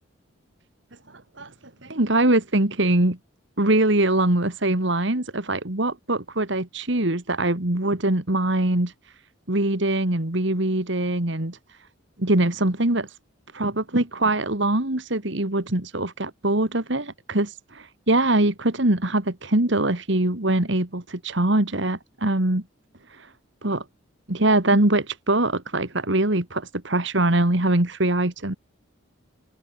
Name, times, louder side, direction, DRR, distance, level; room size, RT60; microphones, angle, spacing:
voice 1, 1.1-1.5 1.8-3.2 3.6-8.9 9.5-11.6 12.2-13.1 13.5-17.5 18.1-22.6 23.2-23.3 23.6-23.8 24.3-28.5, right 1 dB, 60° right, 2.2 m, -22 dB
open air
head